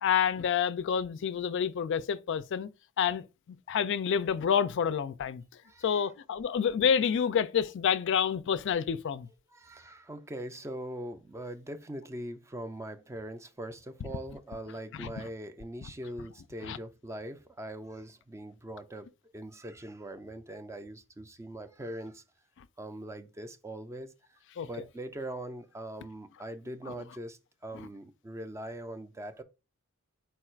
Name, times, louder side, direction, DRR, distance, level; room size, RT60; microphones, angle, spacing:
voice 1, 0.0-2.7 3.0-3.2 3.7-5.4 5.8-9.3 15.0-15.1 16.7-16.8 24.6-24.7, left 7 dB, 60° left, 0.3 m, -28 dB
voice 2, 5.6-6.1 9.5-19.1 19.3-22.2 22.8-29.4, right 1 dB, 15° right, 0.4 m, -42 dB
4.4 x 2.4 x 4.4 m
head